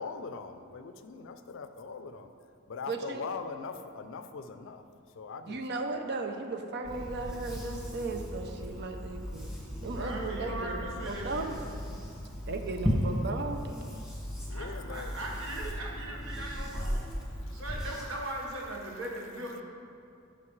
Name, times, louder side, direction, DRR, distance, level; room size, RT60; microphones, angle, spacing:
voice 1, 0.0-2.3 2.7-4.9 5.2-5.6 14.4-15.1 17.5-17.6, left 5 dB, 65° left, 9 dB, 0.4 m, -41 dB
voice 2, 2.9-3.2 5.5-9.5 9.8-11.6 12.5-13.6, right 3 dB, 55° right, 5 dB, 0.6 m, -36 dB
sound 1, 6.8-18.0, equal, 5° right, 1.5 m, -36 dB
voice 3, 9.9-11.5 14.5-17.0 17.4-19.6, right 1 dB, 70° right, -2 dB, 1.4 m, -39 dB
12.5 x 5.1 x 3.2 m, 2.5 s
head